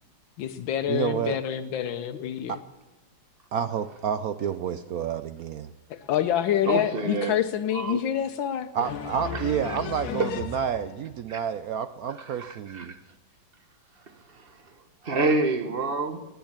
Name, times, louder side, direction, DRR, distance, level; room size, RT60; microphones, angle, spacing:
voice 1, 0.4-2.5 5.9-9.0 9.2-10.4, left 10 dB, 85° left, 8 dB, 1.5 m, -28 dB
voice 2, 0.9-1.4 2.5-2.6 3.5-5.7 8.7-12.9, right 8 dB, 70° right, 12 dB, 0.9 m, -29 dB
voice 3, 6.6-7.4 7.7-8.0 9.3-9.8 10.2-10.3 11.3-11.4 12.2-13.0 14.3-14.6 15.0-16.2, right 3 dB, 35° right, 9 dB, 1.3 m, -28 dB
20.5 x 8.9 x 7.3 m, 1.2 s
omnidirectional pair, 2.0 m